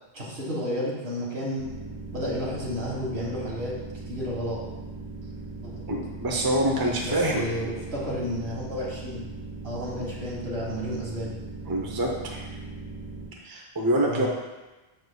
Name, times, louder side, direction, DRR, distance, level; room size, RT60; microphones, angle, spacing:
voice 1, 0.1-1.7 2.1-3.8 4.1-4.6 5.6-5.8 6.9-9.2 9.6-11.3 14.0-14.3, equal, 65° right, -5 dB, 1.8 m, -32 dB
sound 1, 1.6-13.3, right 3 dB, 50° left, 2.4 m, -39 dB
voice 2, 5.9-7.5 11.7-12.4 13.4-14.3, right 1 dB, 25° right, -1 dB, 0.7 m, -26 dB
6.6 x 6.4 x 2.3 m, 1.1 s
omnidirectional pair, 1.1 m